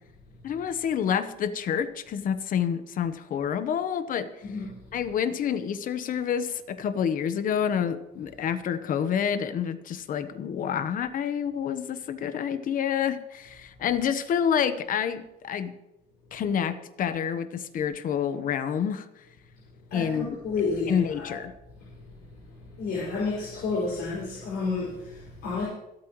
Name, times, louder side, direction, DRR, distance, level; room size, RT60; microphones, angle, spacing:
voice 1, 0.4-4.3 4.9-15.7 16.3-19.0 19.9-20.4 20.9-21.5, left 8 dB, 55° left, 11 dB, 1.1 m, -28 dB
voice 2, 4.4-4.8 19.9-21.3 21.8-21.9 22.5-25.6, left 4 dB, 75° left, -8 dB, 5.7 m, -31 dB
26.0 x 8.8 x 3.1 m, 0.90 s
cardioid pair, 110°, 17 cm